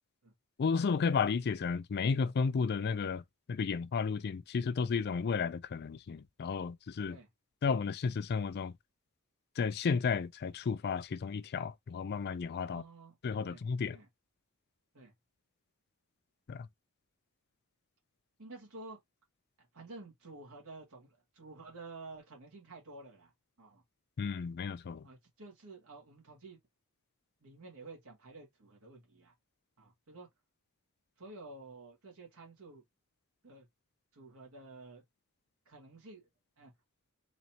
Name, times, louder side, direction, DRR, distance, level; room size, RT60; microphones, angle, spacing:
voice 1, 0.6-3.2 3.5-7.2 7.6-8.7 9.6-12.8 13.2-14.0 16.5-16.7 24.2-25.0, left 5 dB, 45° left, 0.4 m, -33 dB
voice 2, 12.7-13.2 13.4-13.6 13.9-14.1 14.9-15.1 18.4-19.0 19.7-23.3 23.6-23.8 25.0-26.6 27.4-29.3 29.8-30.3 31.2-32.8 33.4-33.7 34.1-35.0 35.7-36.3 36.6-36.7, right 3 dB, 75° right, 2.1 m, -51 dB
4.1 x 3.1 x 2.8 m
head